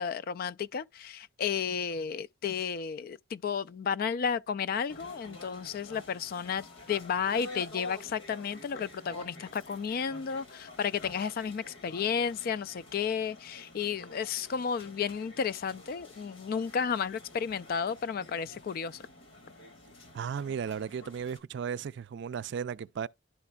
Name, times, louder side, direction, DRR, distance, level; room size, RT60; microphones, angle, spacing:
voice 1, 0.0-19.0, left 6 dB, 50° left, 0.3 m, -32 dB
sound 1, 4.9-21.4, left 2 dB, 80° left, 1.6 m, -49 dB
voice 2, 20.1-23.1, right 7 dB, 65° right, 0.3 m, -35 dB
11.5 x 4.2 x 2.3 m
head